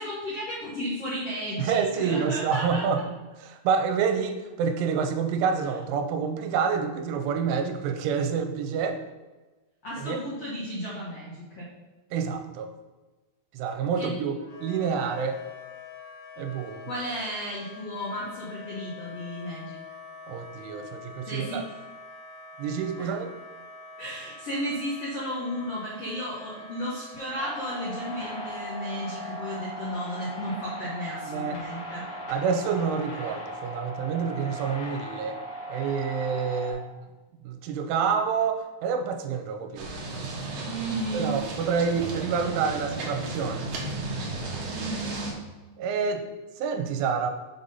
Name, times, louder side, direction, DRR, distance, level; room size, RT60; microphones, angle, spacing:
voice 1, 0.0-2.8 9.8-11.7 14.0-14.1 16.9-19.8 21.2-21.6 23.0-23.1 24.0-32.1 40.7-41.3 44.7-45.3, equal, 80° left, -7 dB, 1.4 m, -34 dB
voice 2, 1.6-3.0 3.4-9.0 10.0-10.2 12.1-12.7 13.5-15.4 16.4-16.9 20.3-21.6 22.6-23.3 31.3-31.6 32.3-35.4 35.7-36.8 37.4-39.9 41.1-43.7 45.8-46.2 46.6-47.3, right 6 dB, 90° right, 6 dB, 3.1 m, -28 dB
Wind instrument woodwind instrument, 14.4-29.7, left 4 dB, 30° left, 2.2 m, -45 dB
sound 1, 27.4-36.7, equal, 60° left, 2.1 m, -38 dB
sound 2, 39.8-45.3, right 2 dB, 75° right, 1.9 m, -34 dB
6.9 x 4.0 x 5.4 m, 1.2 s
omnidirectional pair, 5.6 m